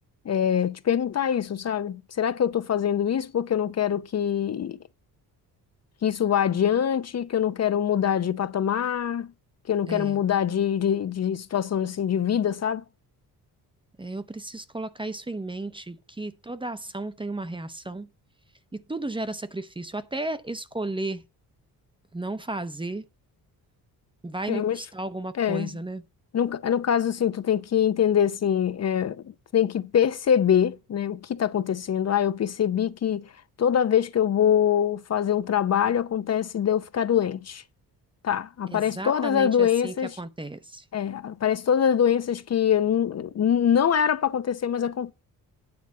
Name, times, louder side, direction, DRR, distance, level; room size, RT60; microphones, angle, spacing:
voice 1, 0.3-4.8 6.0-9.3 9.7-12.8 24.5-24.8 25.4-25.7 26.3-29.2 29.5-33.2 33.6-37.6 38.2-40.2 40.9-45.1, left 9 dB, 45° left, 0.6 m, -24 dB
voice 2, 9.9-10.2 14.0-18.1 18.7-21.2 22.1-23.0 24.2-26.0 38.7-40.8, right 2 dB, 15° right, 0.7 m, -34 dB
9.5 x 4.0 x 7.4 m
cardioid pair, 105°, 38 cm